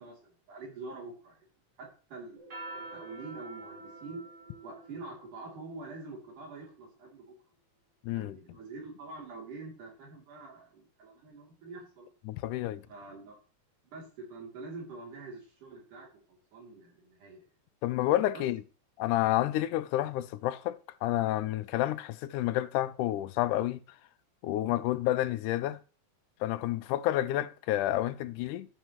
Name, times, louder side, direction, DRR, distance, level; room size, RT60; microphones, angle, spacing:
voice 1, 0.0-1.5 1.8-2.4 2.7-4.2 4.6-7.3 8.1-12.1 12.9-13.4 13.9-17.4 18.3-18.4, right 3 dB, 80° right, 4.5 m, -45 dB
sound 1, 2.4-7.1, right 2 dB, 35° right, 3.5 m, -47 dB
voice 2, 8.0-8.4 12.3-12.8 17.8-18.6 19.0-23.8 24.4-25.8 26.4-28.7, left 14 dB, 80° left, 2.0 m, -29 dB
11.5 x 9.0 x 3.0 m
omnidirectional pair, 3.6 m